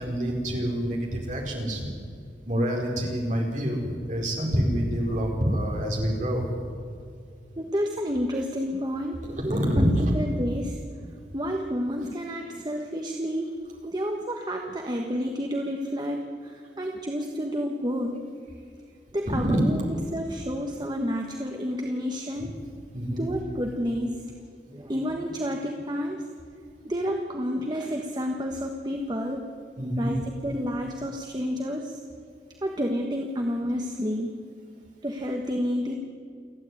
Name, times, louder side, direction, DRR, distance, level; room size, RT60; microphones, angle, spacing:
voice 1, 0.0-1.9 2.5-6.5 9.4-10.1 19.2-19.6 22.9-23.2 29.8-30.1, equal, 40° right, -1 dB, 4.6 m, -26 dB
voice 2, 7.6-9.9 10.1-10.8 11.3-13.6 13.8-18.1 19.1-19.8 20.1-22.5 23.2-24.1 24.7-26.2 26.8-29.4 30.0-32.0 32.6-34.3 35.0-35.9, equal, 25° right, 2 dB, 1.3 m, -30 dB
28.5 x 9.6 x 9.6 m, 2.3 s
head